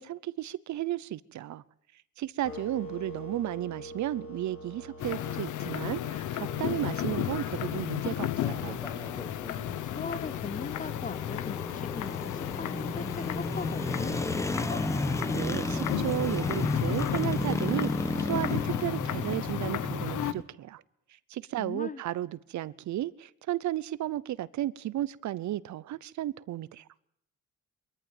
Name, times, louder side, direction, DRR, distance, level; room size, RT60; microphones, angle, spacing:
voice 1, 0.0-1.6 2.2-8.8 15.3-20.8 21.3-26.8, right 13 dB, 70° right, 0.8 m, -34 dB
sound 1, 2.4-8.5, equal, 45° left, 7.3 m, -45 dB
sound 2, 5.0-20.3, left 12 dB, 80° left, 1.1 m, -34 dB
sound 3, 5.9-20.4, left 2 dB, 10° left, 1.2 m, -34 dB
voice 2, 9.8-14.8 21.6-22.0, left 5 dB, 25° left, 0.8 m, -39 dB
22.5 x 14.5 x 9.1 m
cardioid pair, 90°, 30 cm